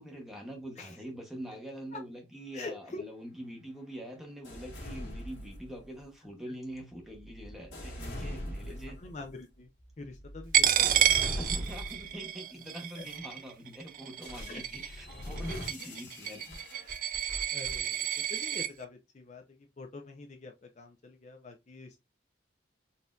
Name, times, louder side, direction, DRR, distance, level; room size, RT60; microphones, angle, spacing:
voice 1, 0.0-9.0 11.4-16.9, equal, ahead, 0.9 m, -44 dB
voice 2, 2.5-3.0 8.7-9.7 10.0-11.4 13.0-13.1 14.5-14.6 17.5-22.0, left 3 dB, 40° left, 0.4 m, -45 dB
sound 1, 4.4-6.0 6.7-12.2 12.8-13.2 14.2-18.2, left 1 dB, 80° left, 1.4 m, -42 dB
Coin (dropping), 10.5-18.7, right 10 dB, 45° right, 0.3 m, -30 dB
4.1 x 2.6 x 2.3 m
head